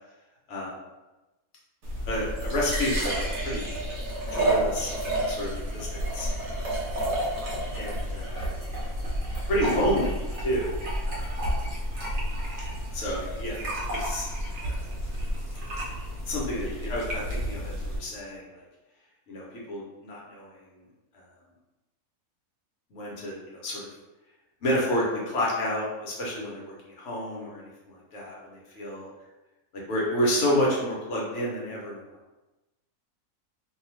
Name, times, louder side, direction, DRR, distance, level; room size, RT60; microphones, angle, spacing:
sound 1, 1.8-18.0, right 1 dB, 60° right, 0.9 m, -30 dB
voice 1, 2.1-3.7 4.3-4.9 5.3-6.6 7.7-8.5 9.5-10.7 11.1-11.3 12.9-13.7 14.0-14.3 14.6-14.8 16.3-18.4 19.3-20.5 22.9-23.9 24.6-29.1 29.9-32.0, equal, 60° left, -4 dB, 1.0 m, -30 dB
2.7 x 2.3 x 3.0 m, 1.1 s
omnidirectional pair, 1.6 m